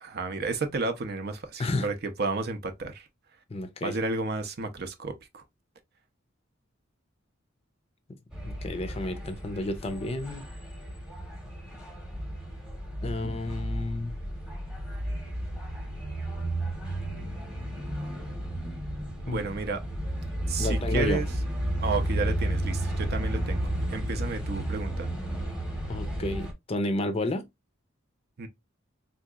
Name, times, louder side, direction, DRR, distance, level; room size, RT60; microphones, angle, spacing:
voice 1, 0.0-3.0 3.8-5.4 19.3-19.8 20.5-21.3 21.8-23.6 23.9-25.1 28.4-28.5, right 3 dB, 50° right, 0.6 m, -32 dB
voice 2, 3.5-4.0 8.1-8.2 8.4-10.5 13.0-14.1 19.3-19.4 20.6-21.2 25.9-27.4, left 2 dB, 30° left, 0.5 m, -31 dB
sound 1, 8.3-26.5, right 1 dB, 5° right, 0.9 m, -33 dB
3.6 x 2.9 x 2.3 m
head